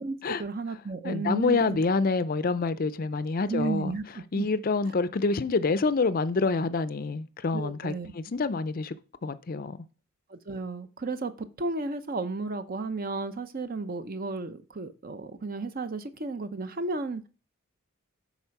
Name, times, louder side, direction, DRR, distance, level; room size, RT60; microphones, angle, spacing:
voice 1, 0.0-1.8 3.5-4.5 7.5-8.1 10.3-17.3, right 3 dB, 40° right, 0.7 m, -33 dB
voice 2, 1.0-4.0 4.3-8.9 9.2-9.8, left 4 dB, 40° left, 0.5 m, -27 dB
9.9 x 4.3 x 5.8 m
head